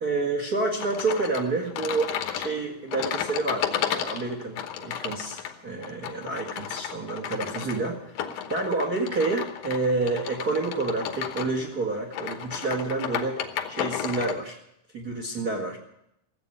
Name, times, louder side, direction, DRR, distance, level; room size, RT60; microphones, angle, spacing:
voice 1, 0.0-8.0 8.5-13.4 13.7-14.6 14.9-15.8, right 3 dB, 35° right, 0 dB, 1.5 m, -29 dB
sound 1, 0.8-14.4, left 9 dB, 65° left, 2.3 m, -33 dB
16.0 x 8.3 x 10.0 m, 0.77 s
omnidirectional pair, 4.5 m